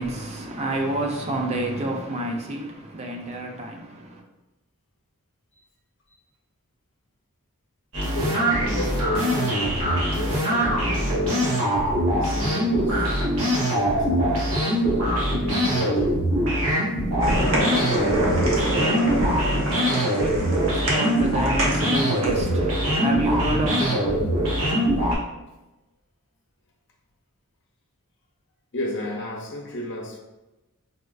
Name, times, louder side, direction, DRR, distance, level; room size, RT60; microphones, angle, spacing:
voice 1, 0.0-4.2 19.7-24.0, right 1 dB, 30° right, 0.4 m, -29 dB
sound 1, 7.9-25.2, equal, 90° right, 1.2 m, -23 dB
voice 2, 8.1-11.6 12.1-13.2 13.7-14.8 15.1-16.2 17.5-18.7 28.7-30.2, left 1 dB, 55° left, 0.6 m, -33 dB
sound 2, 17.2-22.5, right 1 dB, 65° right, 0.9 m, -26 dB
4.1 x 2.3 x 2.3 m
head